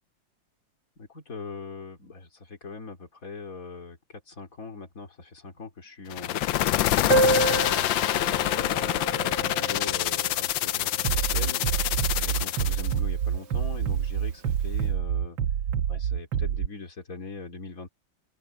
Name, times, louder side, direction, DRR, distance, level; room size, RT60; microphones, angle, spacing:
voice 1, 1.0-15.4 15.9-17.9, left 4 dB, 45° left, 3.7 m, -41 dB
sound 1, 6.1-12.9, left 14 dB, 85° left, 1.4 m, -26 dB
Piano, 7.1-12.5 12.7-12.8 13.0-13.2 13.5-13.6 14.4-14.5, right 2 dB, 60° right, 2.0 m, -30 dB
Bass drum, 11.0-16.7, right 8 dB, 85° right, 1.6 m, -27 dB
open air
omnidirectional pair, 2.1 m